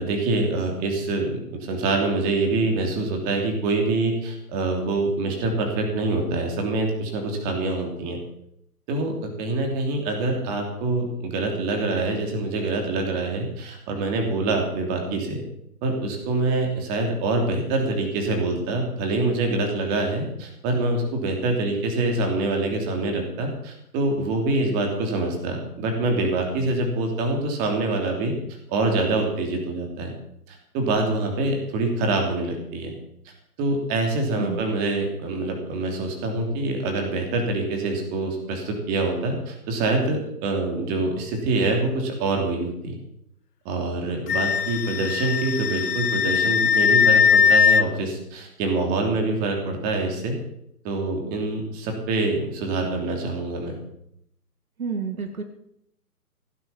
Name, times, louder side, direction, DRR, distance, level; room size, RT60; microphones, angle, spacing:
voice 1, 0.0-8.2 8.9-15.4 15.8-28.3 28.7-30.1 30.5-32.9 33.6-43.0 43.6-50.3 50.8-53.7, right 2 dB, 20° right, 3 dB, 3.1 m, -25 dB
Wind instrument woodwind instrument, 44.3-47.8, left 6 dB, 85° left, 1.1 m, -19 dB
voice 2, 54.8-55.4, right 5 dB, 65° right, 7 dB, 2.5 m, -29 dB
17.0 x 9.6 x 7.4 m, 0.75 s
hypercardioid pair, 155°, 46 cm